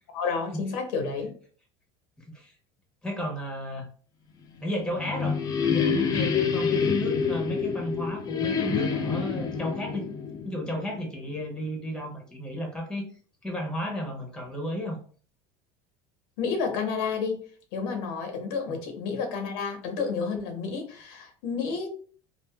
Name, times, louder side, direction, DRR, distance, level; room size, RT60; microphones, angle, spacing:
voice 1, 0.1-1.3 16.4-17.4 17.7-21.9, left 5 dB, 80° left, 5 dB, 0.8 m, -30 dB
voice 2, 2.2-2.5 3.0-3.9 4.6-5.4 5.7-10.1 10.4-13.1 13.4-15.0 18.7-18.8, left 1 dB, 5° left, 1 dB, 0.8 m, -33 dB
sound 1, 4.6-11.3, left 6 dB, 30° left, 0.5 m, -27 dB
3.4 x 2.4 x 2.2 m, 0.43 s
supercardioid pair, 120°, 13 cm